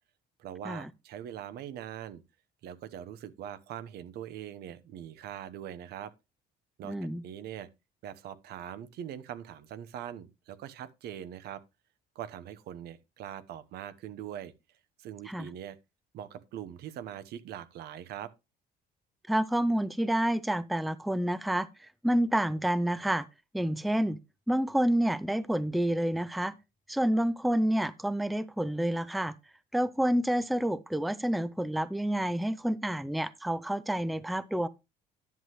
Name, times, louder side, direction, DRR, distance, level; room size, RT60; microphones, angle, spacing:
voice 1, 0.4-2.2 2.6-6.1 6.8-7.0 7.2-7.7 8.0-11.6 12.1-14.5 15.0-15.8 16.1-18.3, right 10 dB, 75° right, 1.0 m, -42 dB
voice 2, 6.8-7.2 15.3-15.5 19.3-23.3 23.5-24.2 24.5-26.5 26.9-29.3 29.7-34.7, right 1 dB, ahead, 0.5 m, -29 dB
11.0 x 7.7 x 3.1 m
cardioid pair, 110°, 17 cm